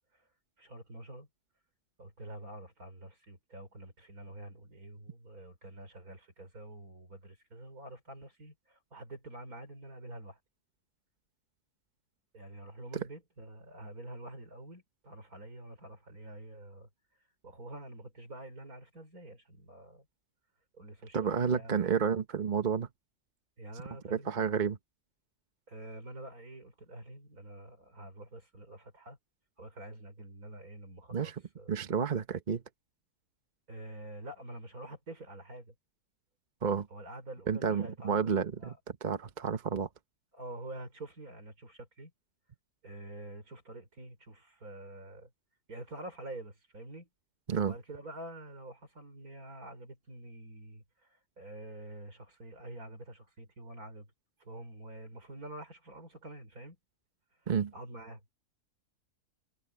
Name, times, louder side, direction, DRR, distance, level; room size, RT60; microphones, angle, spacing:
voice 1, 0.6-1.3 2.0-10.4 12.3-16.9 17.4-20.1 20.7-22.0 23.6-24.3 25.7-29.2 29.6-31.7 33.7-35.7 36.9-38.2 38.6-38.8 40.3-42.1 42.8-45.3 45.7-47.1 47.6-54.1 54.4-56.8 57.7-58.2, right 1 dB, 70° right, 5.7 m, -47 dB
voice 2, 21.1-22.9 24.1-24.8 31.1-31.3 31.7-32.6 36.6-36.9 37.5-38.7 39.0-39.9 47.5-47.7 57.5-57.7, right 6 dB, 35° right, 1.0 m, -30 dB
omnidirectional pair, 1.6 m